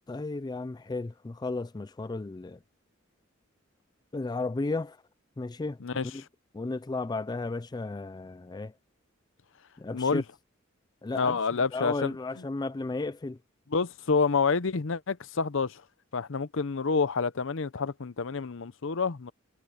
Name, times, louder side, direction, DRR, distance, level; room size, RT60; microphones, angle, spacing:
voice 1, 0.1-2.6 4.1-5.0 5.4-6.2 6.5-8.7 9.8-10.2 11.0-13.4, left 3 dB, 20° left, 0.4 m, -34 dB
voice 2, 9.9-10.2 11.1-12.1 13.7-15.8 16.1-19.3, left 4 dB, 65° left, 0.7 m, -28 dB
head